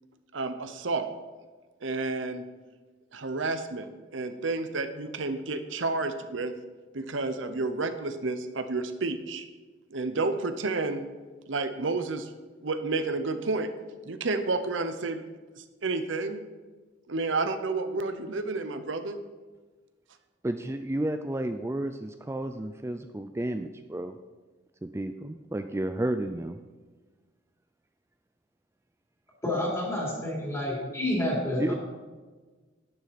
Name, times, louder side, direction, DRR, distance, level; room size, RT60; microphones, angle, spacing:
voice 1, 0.3-1.1 1.8-2.5 3.1-6.5 6.9-9.5 9.9-11.1 11.5-12.3 12.6-13.7 14.0-15.2 15.6-16.4 17.1-19.2, right 3 dB, 70° right, 9 dB, 0.8 m, -30 dB
voice 2, 20.4-24.2 24.8-26.6 31.6-31.7, right 1 dB, 15° right, 8 dB, 0.4 m, -32 dB
voice 3, 29.4-31.8, left 1 dB, 15° left, -4 dB, 3.2 m, -29 dB
11.5 x 9.7 x 4.2 m, 1.3 s
head